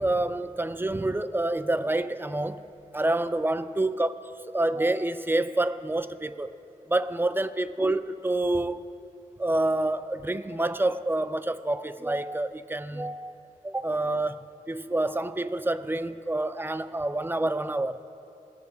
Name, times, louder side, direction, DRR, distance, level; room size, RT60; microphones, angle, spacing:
voice 1, 0.0-2.6 2.9-6.5 6.9-8.8 9.4-13.4 13.6-18.0, right 2 dB, 15° right, 0.4 m, -28 dB
20.5 x 8.3 x 2.3 m
wide cardioid pair, 55°, 15 cm